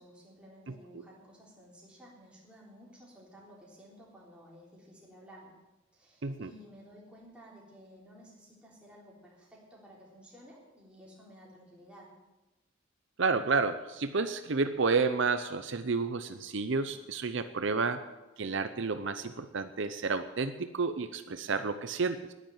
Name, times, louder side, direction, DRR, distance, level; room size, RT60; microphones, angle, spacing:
voice 1, 0.0-5.6 5.9-12.1, equal, 5° right, -5 dB, 3.7 m, -54 dB
voice 2, 13.2-18.0 18.4-22.3, right 4 dB, 60° right, 10 dB, 0.7 m, -30 dB
11.0 x 10.5 x 8.9 m, 1.1 s
head